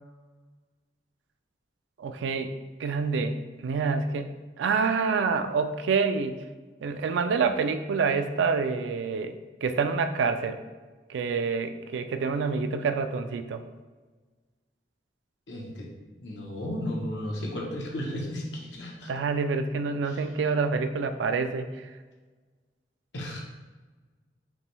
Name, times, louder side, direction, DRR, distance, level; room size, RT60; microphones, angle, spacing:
voice 1, 2.0-2.5 2.8-3.4 3.6-6.4 6.8-9.3 9.6-10.6 11.1-13.6 19.1-21.7, right 5 dB, 80° right, 9 dB, 0.3 m, -27 dB
voice 2, 15.5-15.9 16.2-19.1 20.1-20.2 23.1-23.4, left 1 dB, 75° left, -2 dB, 0.9 m, -34 dB
5.5 x 2.2 x 3.1 m, 1.3 s
head